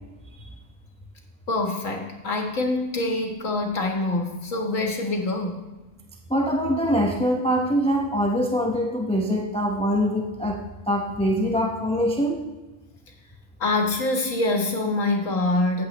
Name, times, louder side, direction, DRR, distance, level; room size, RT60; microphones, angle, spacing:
voice 1, 1.5-5.6 13.6-15.9, left 2 dB, 75° left, 2 dB, 1.9 m, -25 dB
voice 2, 6.3-12.4, equal, 5° left, 1 dB, 0.7 m, -23 dB
14.5 x 8.4 x 3.0 m, 1.1 s
omnidirectional pair, 1.4 m